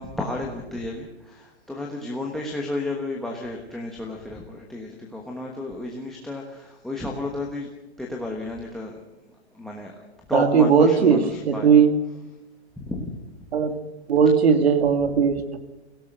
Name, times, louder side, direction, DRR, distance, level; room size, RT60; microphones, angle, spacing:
voice 1, 0.0-7.7 8.0-9.0 9.5-11.7 12.8-13.1, left 2 dB, ahead, 2 dB, 1.2 m, -32 dB
voice 2, 10.3-11.2 11.5-11.9 13.5-13.8 14.1-15.6, right 6 dB, 65° right, 8 dB, 2.5 m, -18 dB
24.5 x 17.0 x 6.6 m, 1.0 s
hypercardioid pair, 165°, 34 cm